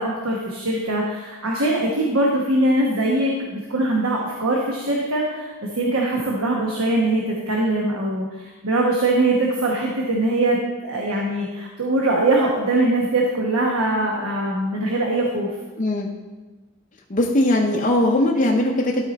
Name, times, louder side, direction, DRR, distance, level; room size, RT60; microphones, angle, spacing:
voice 1, 0.0-15.5, right 2 dB, 65° right, -2 dB, 1.1 m, -22 dB
voice 2, 15.8-16.1 17.1-19.0, left 1 dB, 35° left, -1 dB, 0.6 m, -20 dB
12.5 x 4.3 x 4.1 m, 1.2 s
head